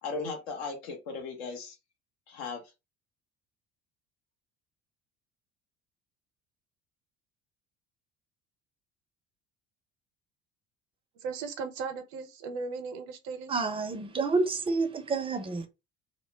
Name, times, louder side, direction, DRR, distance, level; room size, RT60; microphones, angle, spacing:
voice 1, 0.0-1.8 2.3-2.6, left 4 dB, 75° left, 1.0 m, -37 dB
voice 2, 11.2-13.5, right 4 dB, 65° right, 0.7 m, -37 dB
voice 3, 13.5-15.7, right 3 dB, 15° right, 0.6 m, -29 dB
2.2 x 2.0 x 3.3 m
hypercardioid pair, 65°, 32 cm